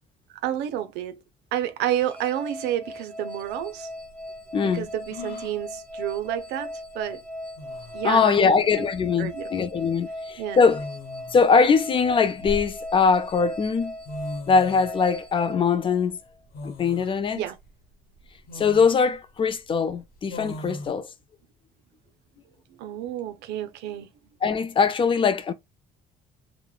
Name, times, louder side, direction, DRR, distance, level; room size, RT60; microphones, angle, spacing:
voice 1, 0.4-1.2 1.5-3.9 4.6-7.2 7.9-8.9 9.2-9.7 10.4-10.7 17.3-17.6 22.8-24.1, right 11 dB, 85° right, 0.5 m, -30 dB
sound 1, 2.0-16.4, left 1 dB, 10° left, 1.1 m, -38 dB
sound 2, 3.5-3.6 5.1-5.6 7.1-7.2 7.6-8.1 9.4-9.6 10.7-11.4 12.1-13.1 13.8-13.9 14.0-14.9 16.5-17.1 17.7-17.8 18.5-19.0 20.3-20.9, left 1 dB, 65° left, 1.0 m, -38 dB
voice 2, 4.5-4.9 8.0-10.8 11.3-13.9 14.5-16.2 16.6-17.4 18.5-21.1 24.4-25.5, left 5 dB, 30° left, 0.4 m, -21 dB
3.0 x 2.1 x 2.2 m
cardioid pair, 110°, 17 cm